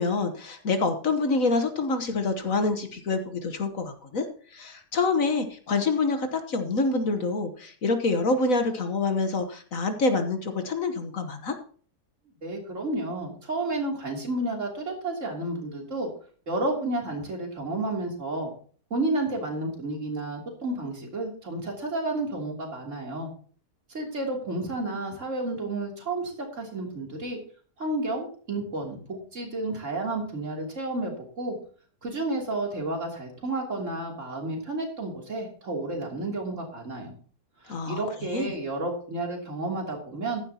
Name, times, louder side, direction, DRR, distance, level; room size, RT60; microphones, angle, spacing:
voice 1, 0.0-4.2 4.5-11.5 37.7-38.0 38.3-38.5, left 3 dB, 60° left, 7 dB, 1.5 m, -26 dB
voice 2, 12.4-16.1 16.5-18.5 18.9-23.3 23.9-27.4 27.8-31.6 32.0-37.1 37.6-40.4, right 2 dB, 50° right, 0 dB, 3.4 m, -31 dB
15.0 x 11.0 x 2.9 m, 0.43 s
omnidirectional pair, 1.6 m